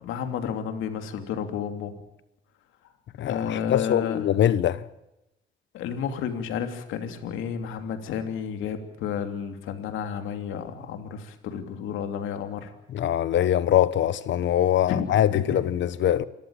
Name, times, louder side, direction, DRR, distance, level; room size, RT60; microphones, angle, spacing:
voice 1, 0.0-1.9 3.2-4.2 5.7-12.7 14.9-15.6, left 7 dB, 90° left, 3.0 m, -31 dB
voice 2, 3.2-4.8 12.9-16.2, left 11 dB, 70° left, 1.2 m, -23 dB
28.0 x 14.5 x 8.7 m
cardioid pair, 90°, 20 cm